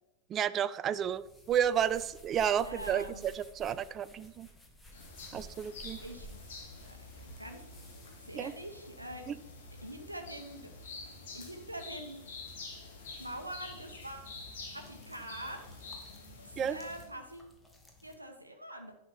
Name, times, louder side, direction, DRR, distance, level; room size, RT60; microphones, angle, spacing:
voice 1, 0.3-4.5 5.3-6.0 8.4-8.5 9.3-9.4 16.6-16.8, right 9 dB, 30° right, 15 dB, 0.4 m, -31 dB
sound 1, 0.9-18.2, equal, 10° left, 1.6 m, -56 dB
voice 2, 2.6-3.4 6.0-7.6 8.2-9.3 9.8-10.7 11.3-12.4 13.2-14.4 14.7-15.8 16.4-17.5 18.0-19.0, right 1 dB, 85° right, 4 dB, 0.9 m, -45 dB
sound 2, 4.9-17.1, left 3 dB, 60° left, 2.3 m, -48 dB
10.5 x 5.0 x 5.8 m, 0.89 s
figure-of-eight pair, 90°, 0 cm